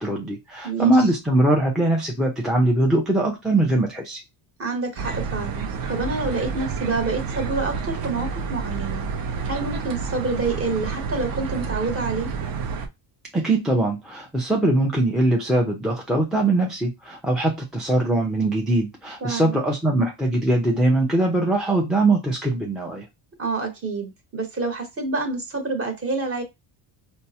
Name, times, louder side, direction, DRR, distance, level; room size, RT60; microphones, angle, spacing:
voice 1, 0.0-4.2 13.3-23.1, right 2 dB, ahead, -1 dB, 0.3 m, -21 dB
voice 2, 0.6-1.0 4.6-9.1 9.4-12.3 19.2-19.6 23.4-26.4, right 3 dB, 30° right, 4 dB, 0.9 m, -27 dB
sound 1, 5.0-12.9, right 5 dB, 50° right, 0.6 m, -29 dB
4.4 x 2.0 x 2.7 m, 0.22 s
cardioid pair, 140°, 47 cm